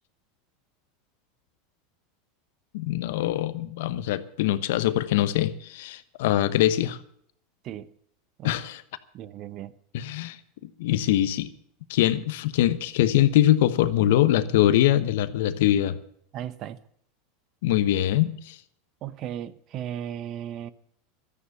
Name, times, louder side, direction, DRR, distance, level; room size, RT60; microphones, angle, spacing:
voice 1, 2.7-7.0 8.4-8.8 9.9-10.4 10.6-11.5 11.9-16.0 17.6-18.6, left 13 dB, 70° left, 1.0 m, -23 dB
voice 2, 9.1-9.7 16.3-16.8 19.0-20.7, right 10 dB, 45° right, 0.8 m, -35 dB
13.5 x 9.7 x 8.2 m
hypercardioid pair, 95°, 0 cm